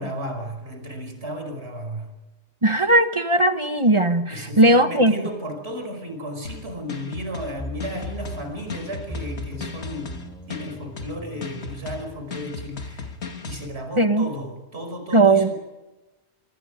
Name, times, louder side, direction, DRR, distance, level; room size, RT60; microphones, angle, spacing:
voice 1, 0.0-2.1 4.3-13.2 13.5-15.5, equal, 70° right, 5 dB, 5.5 m, -34 dB
voice 2, 2.6-5.1 14.0-14.3 15.1-15.5, right 2 dB, 30° right, 8 dB, 1.3 m, -18 dB
sound 1, 6.4-13.7, left 4 dB, 75° left, 1.8 m, -36 dB
sound 2, 7.5-12.4, equal, 5° left, 4.4 m, -39 dB
26.5 x 25.5 x 5.1 m, 1.1 s
omnidirectional pair, 1.1 m